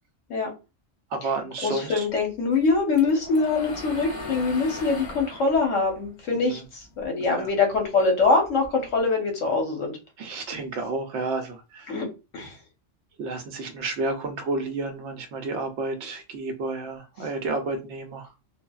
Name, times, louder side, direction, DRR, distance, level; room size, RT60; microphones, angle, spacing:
voice 1, 1.1-2.0 7.3-7.5 10.2-11.9 13.2-18.3, right 3 dB, 70° right, 0.9 m, -31 dB
voice 2, 1.6-10.0 11.9-12.1 12.3-12.6 17.2-17.3, left 4 dB, 80° left, 1.2 m, -24 dB
sound 1, 2.5-7.0 7.4-9.0, left 2 dB, 55° left, 0.8 m, -39 dB
3.2 x 2.2 x 2.3 m
omnidirectional pair, 1.3 m